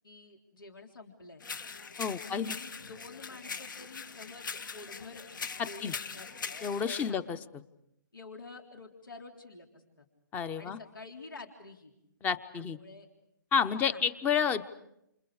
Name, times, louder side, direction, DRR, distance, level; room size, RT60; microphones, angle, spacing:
voice 1, 0.0-1.4 2.1-5.3 5.6-6.5 6.8-7.2 8.1-10.1 10.6-11.9 12.5-13.1 13.7-14.0, left 3 dB, 85° left, 3 dB, 3.6 m, -49 dB
sound 1, 1.4-7.1, left 5 dB, 65° left, 1.8 m, -41 dB
voice 2, 2.0-2.6 5.8-5.9 6.6-7.4 10.3-10.8 12.2-12.8 13.5-14.6, left 7 dB, 15° left, 15 dB, 0.8 m, -30 dB
29.0 x 29.0 x 4.9 m, 0.80 s
figure-of-eight pair, 140°, 11 cm